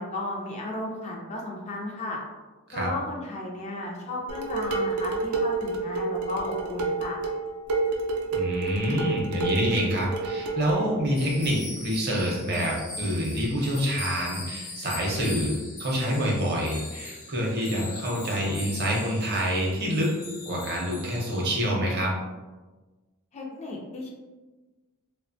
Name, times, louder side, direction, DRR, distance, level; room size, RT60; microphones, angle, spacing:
voice 1, 0.0-2.2 2.7-7.2 23.3-24.1, left 1 dB, 30° left, -1 dB, 0.3 m, -34 dB
Dishes pots and pans, 4.3-10.9, right 3 dB, 85° right, 0.4 m, -29 dB
voice 2, 8.3-20.2 20.5-22.1, equal, 45° right, -2 dB, 0.6 m, -27 dB
sound 1, 11.2-21.4, left 2 dB, 75° left, 0.8 m, -40 dB
2.7 x 2.1 x 2.6 m, 1.2 s
head